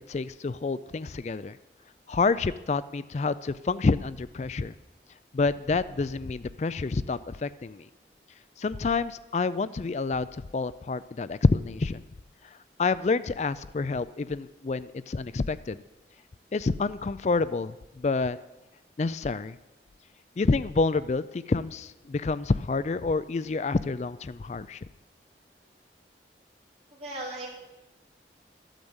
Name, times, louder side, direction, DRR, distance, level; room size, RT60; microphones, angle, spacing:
voice 1, 0.1-1.6 2.1-4.7 5.3-7.9 8.6-12.0 12.8-15.8 16.5-18.4 19.0-19.6 20.4-24.9, left 3 dB, 40° left, 16 dB, 0.4 m, -28 dB
voice 2, 26.9-27.5, right 1 dB, 40° right, -5 dB, 2.8 m, -36 dB
13.0 x 8.9 x 8.0 m, 1.0 s
head